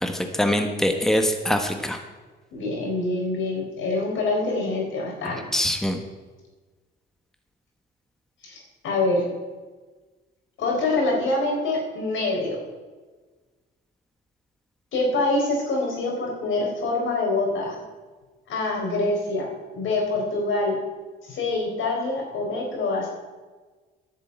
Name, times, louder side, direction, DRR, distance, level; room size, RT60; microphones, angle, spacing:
voice 1, 0.0-2.0 5.5-6.0, left 1 dB, ahead, 5 dB, 1.3 m, -23 dB
voice 2, 2.5-5.4 8.4-9.2 10.6-12.6 14.9-17.8 18.5-20.8 21.2-23.1, left 2 dB, 80° left, 0 dB, 4.3 m, -25 dB
11.0 x 6.9 x 8.6 m, 1.3 s
cardioid pair, 90°, 20 cm